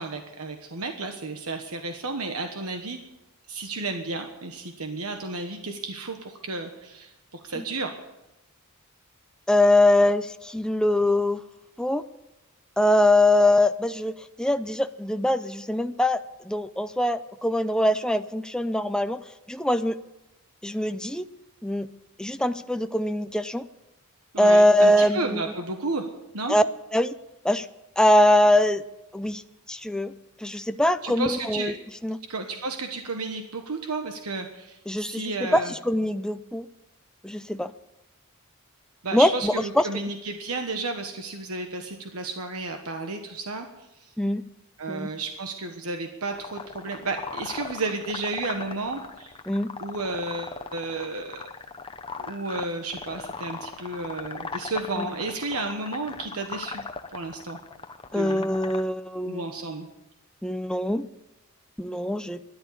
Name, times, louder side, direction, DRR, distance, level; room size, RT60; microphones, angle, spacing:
voice 1, 0.0-3.0 3.5-8.0 24.3-26.1 26.3-26.6 31.0-31.7 32.3-35.7 39.0-43.7 44.0-44.1 44.8-49.4 49.8-51.4 52.2-56.8 57.1-57.6 58.1-58.4 59.2-59.9, right 3 dB, 80° right, 5 dB, 1.3 m, -32 dB
voice 2, 9.5-11.4 11.8-12.0 12.8-19.2 19.5-20.0 20.6-21.2 21.6-21.9 22.2-23.6 24.4-25.4 26.5-26.6 26.9-27.1 27.4-27.7 28.0-28.8 29.1-29.4 29.7-30.1 30.4-31.7 32.0-32.2 34.9-36.7 37.2-37.7 39.1-39.9 44.2-44.4 44.9-45.1 49.5-49.7 55.0-55.1 58.1-59.5 60.4-61.0 61.8-62.4, left 1 dB, 5° left, 10 dB, 0.5 m, -22 dB
sound 1, 46.3-58.8, left 4 dB, 25° left, 0.9 m, -38 dB
13.5 x 11.5 x 8.6 m, 0.94 s
head